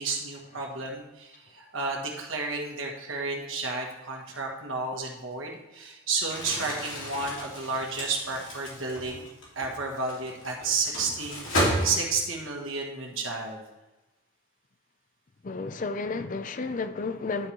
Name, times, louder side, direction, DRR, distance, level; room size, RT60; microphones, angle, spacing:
voice 1, 0.0-9.2 9.5-13.6, right 3 dB, 75° right, 1 dB, 1.6 m, -32 dB
Crumpling crinkling, 6.2-12.4, equal, 70° left, 2.8 m, -33 dB
voice 2, 15.4-17.5, left 3 dB, 40° left, 10 dB, 0.4 m, -32 dB
11.0 x 4.3 x 4.6 m, 1.0 s
head